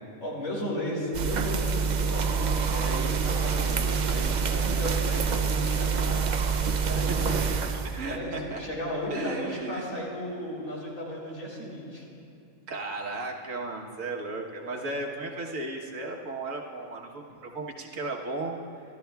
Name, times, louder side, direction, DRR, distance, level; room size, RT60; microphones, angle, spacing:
voice 1, 0.2-6.3 6.8-7.2 8.1-12.1, equal, 85° left, -5 dB, 3.7 m, -35 dB
sound 1, 1.1-8.1, right 5 dB, 55° right, 0.5 m, -26 dB
voice 2, 7.7-8.6 9.1-9.9 12.7-18.6, right 2 dB, 75° right, -1 dB, 1.6 m, -35 dB
24.5 x 13.0 x 2.3 m, 2.8 s
omnidirectional pair, 1.4 m